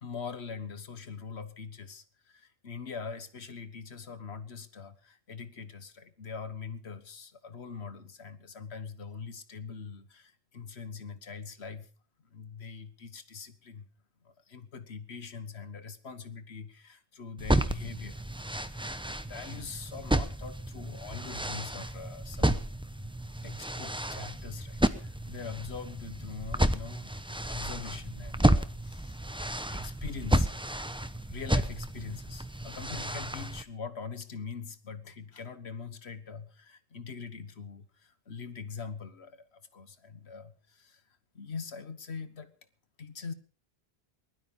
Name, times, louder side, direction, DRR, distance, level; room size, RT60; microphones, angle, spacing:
voice 1, 0.0-11.9 12.2-13.9 14.2-18.2 18.8-22.7 23.4-30.5 31.3-41.0 41.3-42.5 43.0-43.3, left 5 dB, 75° left, 11 dB, 1.6 m, -43 dB
sound 1, 17.4-33.6, right 1 dB, 5° right, 0.8 m, -31 dB
21.0 x 12.0 x 5.5 m, 0.40 s
omnidirectional pair, 1.1 m